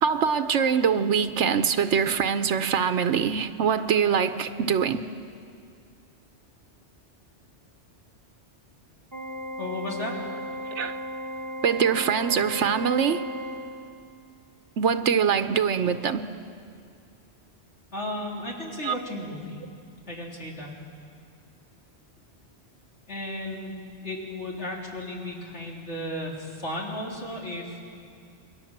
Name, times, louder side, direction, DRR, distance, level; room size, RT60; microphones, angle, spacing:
voice 1, 0.0-5.0 10.7-11.0 11.6-13.3 14.8-16.2 18.8-18.9, right 7 dB, 85° right, 9 dB, 1.1 m, -23 dB
Organ, 9.1-14.2, equal, 15° right, 1.5 m, -36 dB
voice 2, 9.6-10.1 17.9-19.6 20.1-20.7 23.1-27.8, left 1 dB, 75° left, -3 dB, 4.1 m, -34 dB
28.0 x 21.0 x 7.4 m, 2.3 s
omnidirectional pair, 1.2 m